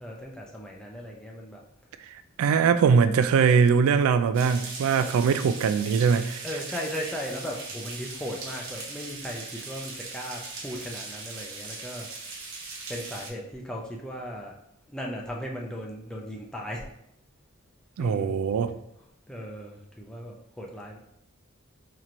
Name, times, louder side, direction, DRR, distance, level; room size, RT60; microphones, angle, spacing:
voice 1, 0.0-1.6 5.0-5.1 6.4-12.1 12.9-14.5 14.9-16.8 18.0-18.4 19.3-21.0, equal, 5° left, -2 dB, 0.4 m, -37 dB
voice 2, 2.4-6.4 18.0-18.7, right 6 dB, 75° right, 11 dB, 0.3 m, -21 dB
sound 1, 4.3-13.3, right 3 dB, 60° right, 0.8 m, -39 dB
4.3 x 2.9 x 2.5 m, 0.80 s
head